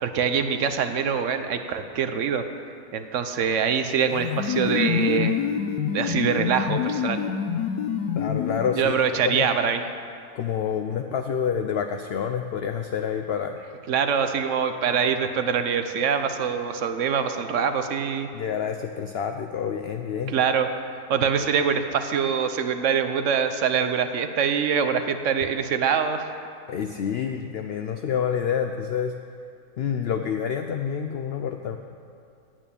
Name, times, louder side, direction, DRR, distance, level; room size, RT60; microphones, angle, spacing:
voice 1, 0.0-2.4 2.9-5.4 5.9-7.2 8.8-9.8 13.9-18.3 20.3-20.7 21.1-26.3, right 7 dB, 60° right, 8 dB, 1.0 m, -24 dB
sound 1, 4.1-9.0, left 7 dB, 90° left, 1.2 m, -26 dB
voice 2, 8.1-9.0 9.2-9.5 10.3-13.6 18.3-20.3 26.7-29.1 29.8-31.8, left 7 dB, 65° left, 6 dB, 0.6 m, -28 dB
9.2 x 8.8 x 8.5 m, 2.4 s
omnidirectional pair, 1.6 m